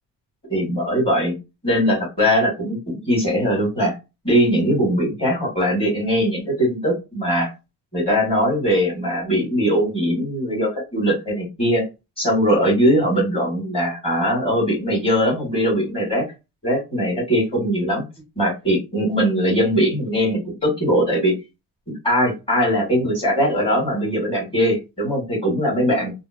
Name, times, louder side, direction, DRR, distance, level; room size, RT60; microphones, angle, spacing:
voice 1, 0.5-1.4 1.6-3.9 4.2-7.5 7.9-11.8 12.2-16.2 16.6-18.0 18.4-21.3 22.0-26.1, equal, 15° left, -4 dB, 1.8 m, -20 dB
3.7 x 2.1 x 2.8 m, 0.26 s
cardioid pair, 175°, 36 cm